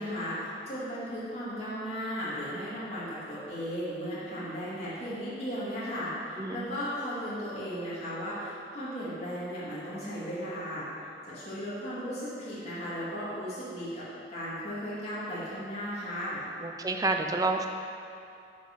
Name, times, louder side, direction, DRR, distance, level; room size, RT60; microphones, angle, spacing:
voice 1, 0.0-10.9 11.3-16.5, equal, 35° left, -10 dB, 2.1 m, -36 dB
voice 2, 16.6-17.7, right 3 dB, 20° right, 5 dB, 0.5 m, -29 dB
9.2 x 5.3 x 5.2 m, 2.5 s
head